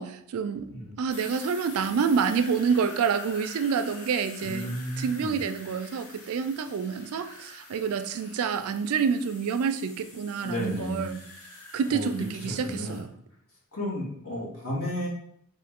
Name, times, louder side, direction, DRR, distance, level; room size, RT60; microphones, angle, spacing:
voice 1, 0.0-0.7 1.0-11.2 11.7-13.1, right 6 dB, 75° right, 9 dB, 0.3 m, -28 dB
sound 1, 1.1-13.0, left 2 dB, 90° left, 1.0 m, -47 dB
voice 2, 4.4-5.4 10.3-11.1 11.9-13.0 13.7-15.1, left 1 dB, 65° left, -5 dB, 1.6 m, -33 dB
3.8 x 2.5 x 3.6 m, 0.67 s
head